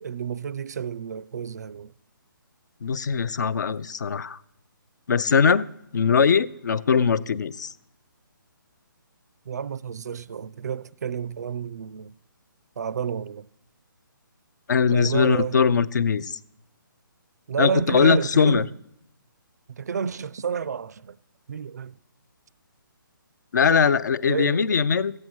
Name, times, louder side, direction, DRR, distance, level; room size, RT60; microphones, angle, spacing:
voice 1, 0.0-1.9 9.5-12.1 12.8-13.5 14.9-15.6 17.5-18.7 19.7-21.2 21.5-21.9 24.3-24.6, right 7 dB, 50° right, 0.4 m, -30 dB
voice 2, 2.8-4.4 5.1-5.7 5.9-7.7 14.7-16.4 17.6-18.7 23.5-25.1, left 6 dB, 55° left, 0.5 m, -21 dB
15.0 x 8.6 x 6.1 m
hypercardioid pair, 165°, 11 cm